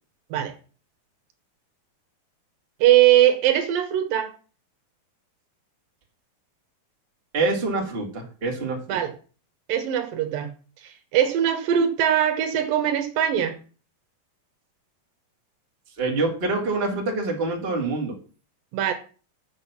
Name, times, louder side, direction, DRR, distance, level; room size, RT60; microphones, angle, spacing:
voice 1, 2.8-4.3 8.9-9.1 9.7-10.5 11.1-13.6 18.7-18.9, right 11 dB, 75° right, 2.7 m, -21 dB
voice 2, 7.3-9.0 16.0-18.2, right 3 dB, 20° right, 1.9 m, -26 dB
7.7 x 6.4 x 7.0 m
omnidirectional pair, 4.1 m